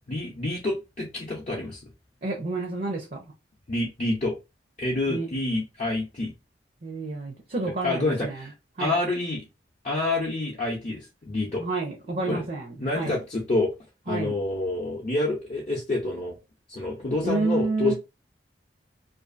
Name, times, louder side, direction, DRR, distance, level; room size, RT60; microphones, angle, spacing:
voice 1, 0.1-1.8 3.7-4.4 4.8-6.3 7.8-8.5 8.8-9.4 9.8-11.7 12.3-12.4 12.8-13.7 14.1-16.3 16.7-17.9, left 2 dB, 40° left, 0.6 m, -28 dB
voice 2, 2.2-3.3 5.1-5.3 6.8-8.5 8.8-8.9 11.6-13.2 14.1-14.3 17.2-17.9, right 3 dB, 50° right, 0.6 m, -29 dB
2.5 x 2.5 x 2.5 m
head